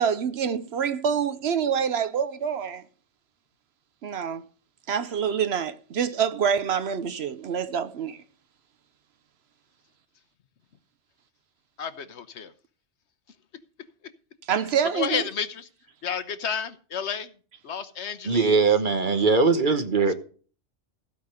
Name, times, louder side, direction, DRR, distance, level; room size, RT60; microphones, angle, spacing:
voice 1, 0.0-2.8 4.0-4.4 4.9-8.2 14.5-15.2, right 7 dB, 65° right, 0.9 m, -26 dB
voice 2, 11.8-12.5 14.9-15.7 16.0-17.3 17.6-18.5, left 7 dB, 70° left, 1.2 m, -31 dB
voice 3, 18.2-20.1, right 4 dB, 45° right, 1.3 m, -21 dB
15.5 x 5.3 x 6.5 m
omnidirectional pair, 1.2 m